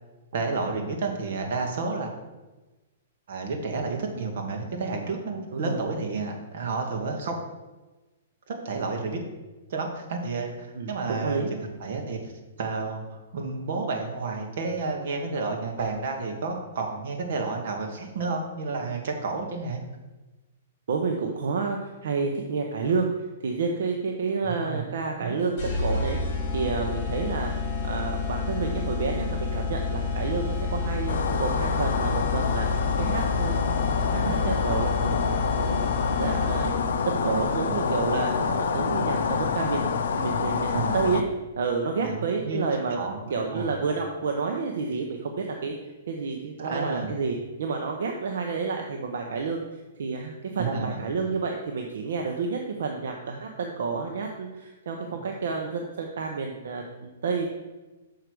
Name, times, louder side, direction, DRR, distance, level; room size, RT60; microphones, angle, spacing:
voice 1, 0.3-2.1 3.3-7.4 8.5-9.2 9.7-11.4 11.8-12.2 12.6-19.8 24.4-24.8 25.2-25.4 34.2-34.4 40.7-41.0 42.0-42.6 42.9-43.7 46.6-47.1 50.6-51.0 55.1-55.2, right 4 dB, 50° right, 2 dB, 1.5 m, -31 dB
voice 2, 5.5-5.9 10.7-11.5 20.9-26.2 26.5-27.5 27.8-32.7 33.0-33.6 33.9-35.9 36.2-36.7 37.1-41.2 41.6-43.0 43.3-45.7 46.1-57.5, right 4 dB, 70° right, 2 dB, 0.9 m, -30 dB
sound 1, 25.6-37.0, left 4 dB, 30° left, 2.4 m, -29 dB
sound 2, 31.1-41.2, left 5 dB, 70° left, 0.6 m, -27 dB
6.6 x 4.7 x 6.1 m, 1.1 s
hypercardioid pair, 170°, 0 cm